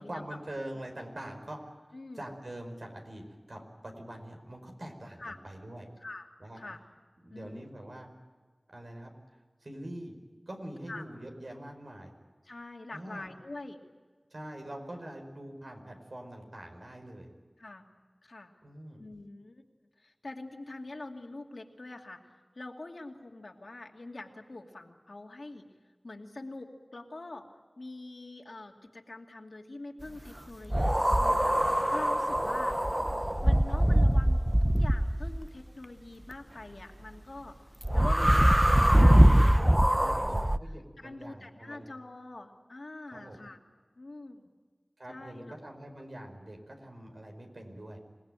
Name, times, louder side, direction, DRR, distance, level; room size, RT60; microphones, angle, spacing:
voice 1, 0.0-1.8 2.1-3.2 3.5-5.9 6.4-6.6 7.2-8.1 8.7-9.1 9.6-10.1 10.5-12.1 12.9-13.3 14.3-17.3 18.6-19.0 32.3-32.4 39.9-40.2 40.6-41.9 43.1-43.4 45.0-48.0, right 1 dB, 75° right, 3 dB, 5.0 m, -44 dB
voice 2, 1.9-2.3 5.2-5.4 6.0-6.8 7.3-7.7 10.9-11.0 12.4-13.8 17.6-17.9 18.2-18.5 19.0-19.6 20.0-25.7 26.0-27.5 27.8-32.7 33.4-37.6 37.9-40.4 41.0-43.6 44.0-44.4 45.1-45.5, left 2 dB, 85° left, 2 dB, 2.5 m, -44 dB
sound 1, 30.7-35.4 37.8-40.6, equal, 15° right, 0.7 m, -23 dB
27.0 x 18.5 x 9.1 m, 1.5 s
wide cardioid pair, 40°, 0 cm